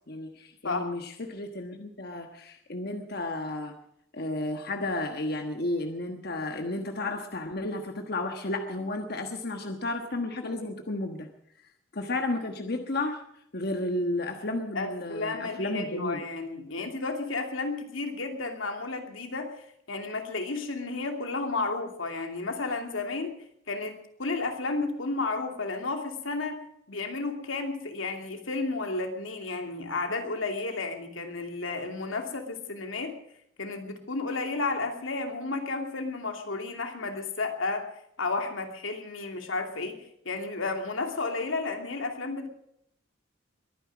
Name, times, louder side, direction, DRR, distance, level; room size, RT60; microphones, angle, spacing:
voice 1, 0.1-3.7 4.1-11.3 11.9-13.2 13.5-16.2, left 2 dB, 50° left, 5 dB, 1.3 m, -32 dB
voice 2, 14.7-19.6 19.9-23.4 23.7-33.1 33.6-37.9 38.2-42.5, left 3 dB, 85° left, 4 dB, 2.7 m, -32 dB
22.5 x 10.0 x 6.2 m, 0.74 s
head